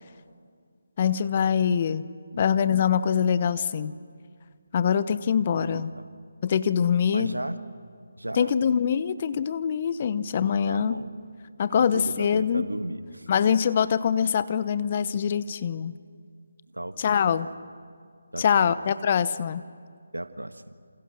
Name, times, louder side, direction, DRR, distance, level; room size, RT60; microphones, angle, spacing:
voice 1, 1.0-2.0 2.4-3.9 4.7-5.9 6.4-7.4 8.4-11.0 11.6-12.7 13.3-15.9 17.0-17.5 18.4-19.6, left 7 dB, 35° left, 15 dB, 0.9 m, -24 dB
voice 2, 5.6-6.1 7.1-7.6 8.2-8.5 10.7-11.1 11.7-13.3 16.7-17.4 18.3-18.7 20.1-20.7, right 1 dB, 90° right, 10 dB, 1.6 m, -35 dB
28.0 x 28.0 x 6.4 m, 2.1 s
figure-of-eight pair, 150°, 0 cm